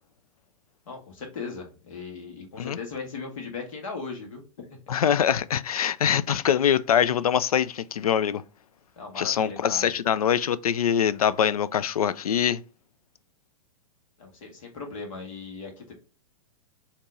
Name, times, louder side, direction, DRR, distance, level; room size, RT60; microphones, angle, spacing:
voice 1, 0.9-4.8 9.0-9.9 14.2-15.9, left 4 dB, 65° left, 1.7 m, -38 dB
voice 2, 4.9-8.4 9.2-12.6, left 9 dB, 80° left, 0.4 m, -23 dB
4.4 x 2.9 x 3.7 m
hypercardioid pair, 110°, 18 cm